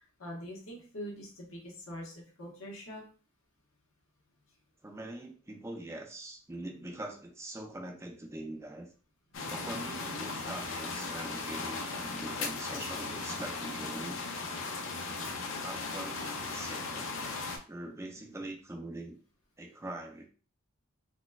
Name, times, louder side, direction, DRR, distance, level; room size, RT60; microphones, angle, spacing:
voice 1, 0.0-3.0, equal, 85° left, -2 dB, 1.1 m, -44 dB
voice 2, 4.8-8.9 9.5-14.2 15.6-17.1 17.7-19.2 19.6-20.3, right 1 dB, 15° right, 3 dB, 0.4 m, -43 dB
sound 1, 9.3-17.6, left 3 dB, 65° left, 0.5 m, -37 dB
4.0 x 2.2 x 2.3 m, 0.38 s
head